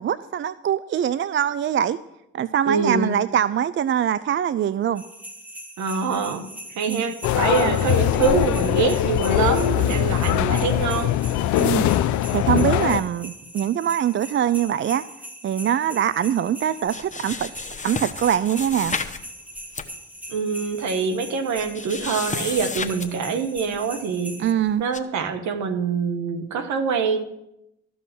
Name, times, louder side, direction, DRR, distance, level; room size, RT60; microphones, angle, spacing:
voice 1, 0.0-2.0 2.3-5.0 6.9-7.0 7.6-7.9 11.6-11.9 12.3-15.0 15.4-17.5 17.8-19.0 24.4-24.8, right 9 dB, 40° right, 16 dB, 0.4 m, -23 dB
voice 2, 2.7-3.2 5.8-11.1 20.3-24.4 24.8-27.2, right 5 dB, 65° right, 8 dB, 1.4 m, -25 dB
sound 1, 5.0-24.5, right 1 dB, 5° right, 1.6 m, -41 dB
sound 2, 7.2-13.0, left 13 dB, 70° left, 0.6 m, -21 dB
sound 3, 16.9-19.2 19.6-19.9 20.6-20.7 20.9-21.0 21.6-23.1 23.6-23.8 24.9-25.0, left 4 dB, 25° left, 1.1 m, -32 dB
13.5 x 5.5 x 7.7 m, 0.84 s
hypercardioid pair, 55°, 30 cm